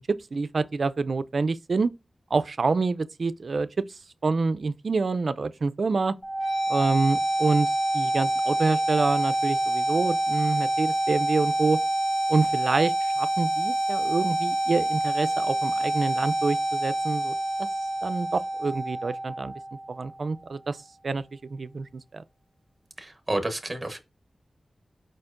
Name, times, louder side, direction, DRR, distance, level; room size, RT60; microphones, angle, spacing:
voice 1, 0.1-1.9 2.3-3.7 4.2-6.1 6.7-7.7 7.9-11.8 12.3-17.3 17.6-17.7 18.0-19.5 19.9-20.8 21.0-21.2 21.5-22.2, right 4 dB, 60° right, 0.3 m, -27 dB
sound 1, 6.2-20.2, right 1 dB, 55° left, 2.6 m, -27 dB
voice 2, 23.0-24.0, right 1 dB, 15° right, 0.9 m, -30 dB
4.9 x 4.3 x 2.5 m
wide cardioid pair, 115°, 0 cm